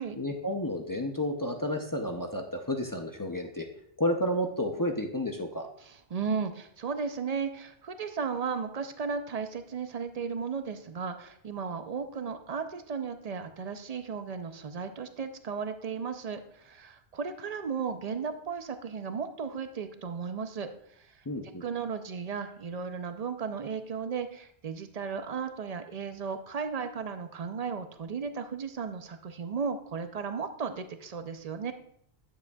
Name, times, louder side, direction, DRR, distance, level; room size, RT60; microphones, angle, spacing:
voice 1, 0.2-3.7 4.0-5.7 21.3-21.6, left 1 dB, 30° left, 3 dB, 0.4 m, -31 dB
voice 2, 5.8-20.7 21.0-21.2 21.6-31.7, right 5 dB, 45° right, 8 dB, 0.5 m, -35 dB
9.5 x 7.6 x 2.3 m, 0.68 s
omnidirectional pair, 1.2 m